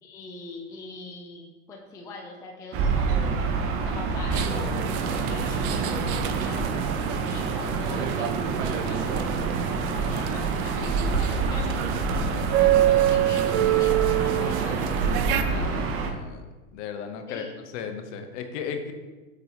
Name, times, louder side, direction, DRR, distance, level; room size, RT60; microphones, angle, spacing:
voice 1, 0.0-3.4 3.8-6.7 7.3-9.3 9.9-11.9 12.8-15.1 17.3-17.5, left 3 dB, 10° left, 0 dB, 0.3 m, -42 dB
Gull seagull / Ocean, 2.7-16.1, right 4 dB, 30° right, 0.6 m, -28 dB
sound 1, 4.3-15.4, right 11 dB, 75° right, 0.6 m, -27 dB
voice 2, 15.4-16.4 16.7-17.4 17.7-18.9, left 7 dB, 55° left, 6 dB, 0.9 m, -36 dB
8.1 x 4.1 x 2.8 m, 1.2 s
supercardioid pair, 120°, 43 cm